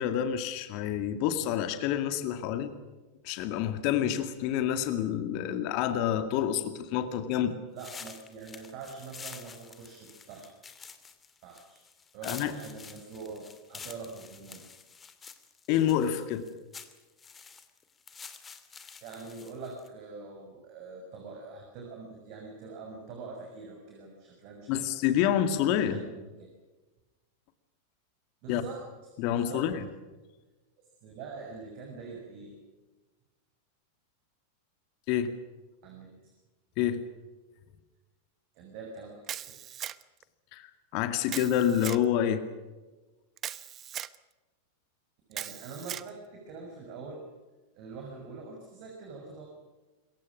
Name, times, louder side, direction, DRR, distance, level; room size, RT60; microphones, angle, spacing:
voice 1, 0.0-2.7 3.2-7.6 12.2-12.5 15.7-16.5 24.7-26.0 28.5-28.6 29.2-29.8 35.1-35.3 36.8-37.0 40.5-42.4, left 10 dB, 45° left, 9 dB, 2.1 m, -28 dB
voice 2, 7.7-10.5 11.4-11.8 12.1-14.7 19.0-24.9 25.8-26.5 28.4-28.8 29.3-29.7 31.0-32.5 35.8-36.3 38.5-39.6 45.3-47.2 47.7-49.5, right 4 dB, 45° right, 2 dB, 6.3 m, -44 dB
sound 1, 7.8-19.9, left 5 dB, 20° left, 2.6 m, -48 dB
Camera, 39.3-40.2 41.3-42.0 43.4-44.2 45.3-46.1, right 10 dB, 30° right, 1.0 m, -38 dB
27.0 x 23.0 x 6.2 m, 1.2 s
figure-of-eight pair, 90°, 0 cm